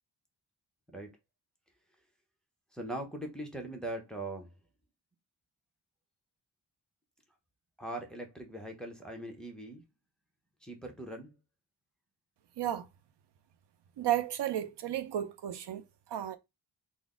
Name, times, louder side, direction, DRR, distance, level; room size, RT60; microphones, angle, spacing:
voice 1, 2.7-4.5 7.8-9.8 10.6-11.3, right 1 dB, ahead, 0.6 m, -41 dB
voice 2, 14.0-16.4, right 12 dB, 80° right, 0.5 m, -33 dB
3.9 x 2.0 x 3.6 m
wide cardioid pair, 170°, 41 cm